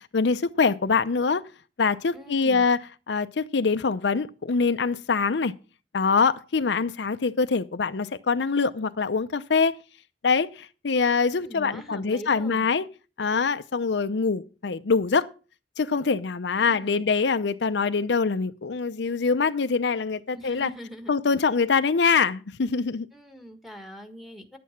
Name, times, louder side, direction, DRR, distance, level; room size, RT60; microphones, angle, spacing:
voice 1, 0.0-1.4 1.8-2.8 3.1-5.5 5.9-9.8 10.2-12.9 13.2-15.3 15.8-20.7 21.1-23.1, left 5 dB, 80° left, 0.6 m, -24 dB
voice 2, 2.1-2.7 11.4-12.7 16.5-17.1 20.3-21.1 23.1-24.6, equal, ahead, 1.5 m, -42 dB
10.0 x 8.5 x 5.8 m
head